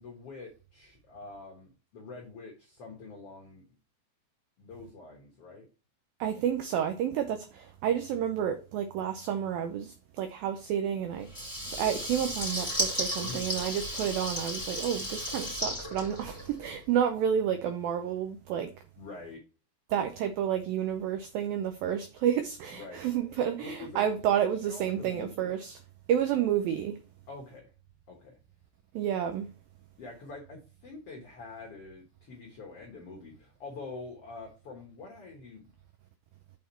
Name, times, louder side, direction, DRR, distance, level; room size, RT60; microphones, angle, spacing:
voice 1, 0.0-3.6 4.6-5.7 13.2-13.4 19.0-19.4 22.7-23.0 23.6-24.1 24.4-25.5 27.3-27.7 28.1-28.4 30.0-35.7, left 3 dB, 70° left, 1.4 m, -45 dB
voice 2, 6.2-18.7 19.9-25.8 26.1-27.0 28.9-29.5, right 9 dB, 85° right, 2.0 m, -30 dB
Water tap faucet / Liquid, 11.3-16.8, equal, 5° right, 2.9 m, -34 dB
6.5 x 5.7 x 4.3 m
omnidirectional pair, 4.9 m